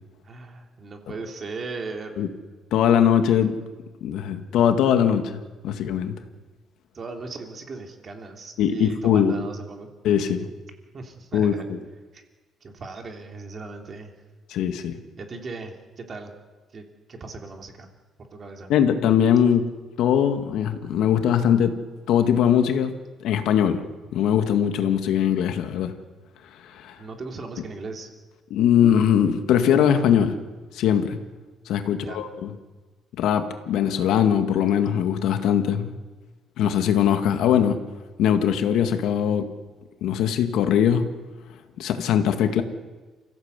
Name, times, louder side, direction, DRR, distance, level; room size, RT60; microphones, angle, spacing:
voice 1, 0.2-2.2 6.9-9.9 10.9-11.6 12.1-12.2 12.6-14.1 15.2-16.3 16.7-16.8 17.1-17.9 18.2-18.7 27.0-28.1 31.8-32.2, right 3 dB, 30° right, 3 dB, 3.0 m, -37 dB
voice 2, 2.7-3.6 4.0-5.4 5.6-6.2 8.6-9.4 10.0-10.5 11.3-11.8 14.5-15.0 18.7-19.7 20.0-21.7 22.1-22.9 23.2-23.8 24.1-25.9 26.7-27.0 28.5-30.4 30.7-31.2 31.7-32.5 33.2-35.9 36.6-37.8 38.2-39.5 40.0-41.1 41.8-42.6, left 9 dB, 70° left, 7 dB, 2.0 m, -21 dB
30.0 x 16.0 x 8.3 m, 1.3 s
cardioid pair, 170°, 0 cm